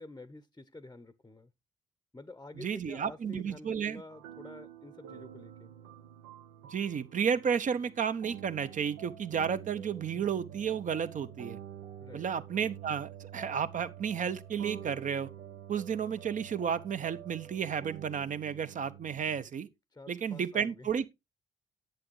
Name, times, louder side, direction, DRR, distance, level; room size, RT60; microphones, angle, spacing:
voice 1, 0.0-1.5 2.1-5.7 12.0-12.2 19.9-20.9, left 2 dB, 15° left, 0.8 m, -49 dB
voice 2, 2.6-4.0 6.7-11.6 12.1-15.3 15.7-19.7 20.1-21.1, right 7 dB, 45° right, 0.9 m, -32 dB
sound 1, 4.1-19.4, right 10 dB, 75° right, 0.8 m, -48 dB
10.5 x 7.8 x 3.1 m
hypercardioid pair, 45°, 18 cm